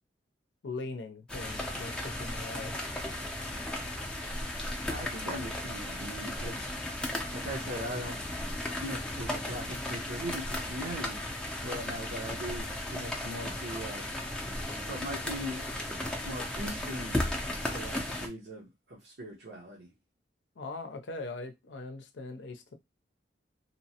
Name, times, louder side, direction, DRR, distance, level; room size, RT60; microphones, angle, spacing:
voice 1, 0.6-2.8 20.6-22.8, left 3 dB, 85° left, 0.5 m, -41 dB
sound 1, 1.3-18.3, left 1 dB, 5° left, 0.4 m, -35 dB
voice 2, 4.9-6.7 7.3-8.2 8.8-11.2 11.6-14.0 14.8-15.6 16.2-17.2 17.7-19.9, equal, 70° right, 0.8 m, -40 dB
2.9 x 2.0 x 2.7 m
head